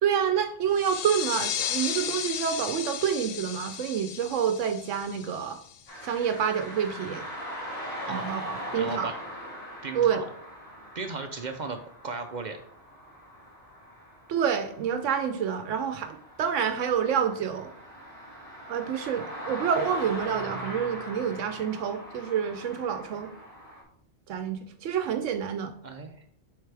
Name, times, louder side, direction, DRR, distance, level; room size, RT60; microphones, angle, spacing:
voice 1, 0.0-5.6 6.0-7.3 8.1-9.1 9.9-10.3 14.3-17.7 18.7-23.3 24.3-25.7, right 8 dB, 80° right, 7 dB, 0.9 m, -28 dB
sound 1, 0.7-6.1, left 9 dB, 70° left, 0.8 m, -34 dB
sound 2, 5.9-23.8, equal, 30° left, 1.9 m, -41 dB
voice 2, 8.8-9.1 9.8-10.2 10.9-12.6 25.8-26.2, right 4 dB, 55° right, 7 dB, 0.5 m, -36 dB
8.0 x 4.0 x 3.3 m, 0.64 s
omnidirectional pair, 1.3 m